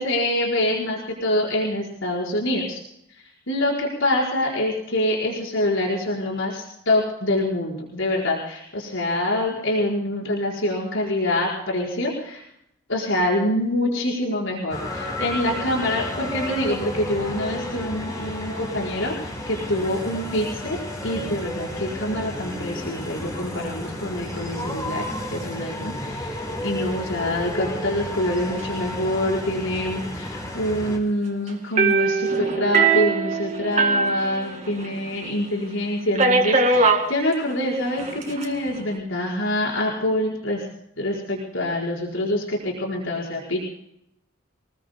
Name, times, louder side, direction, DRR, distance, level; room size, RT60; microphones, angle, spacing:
voice 1, 0.0-2.8 3.5-12.4 12.9-25.1 25.3-40.6 41.0-43.7, left 1 dB, 80° left, -2 dB, 5.0 m, -25 dB
sound 1, 14.7-31.0, left 1 dB, 20° left, 4.2 m, -32 dB
sound 2, 31.8-35.0 35.3-35.4 36.2-37.1 38.0-38.4, right 4 dB, 35° right, 2.2 m, -21 dB
27.0 x 20.5 x 2.2 m, 0.75 s
head